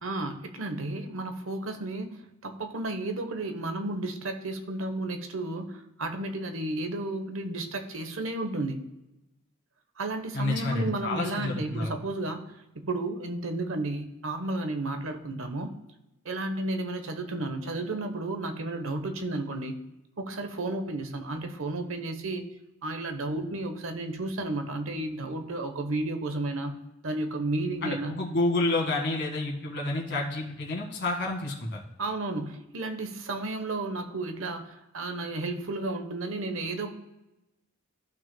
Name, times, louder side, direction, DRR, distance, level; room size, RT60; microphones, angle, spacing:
voice 1, 0.0-8.9 10.0-15.7 16.2-19.8 20.2-22.5 22.8-28.2 32.0-36.9, right 2 dB, 70° right, 6 dB, 1.0 m, -33 dB
voice 2, 10.3-11.9 27.8-31.8, left 2 dB, 55° left, -1 dB, 1.9 m, -29 dB
14.5 x 6.0 x 2.2 m, 0.94 s
head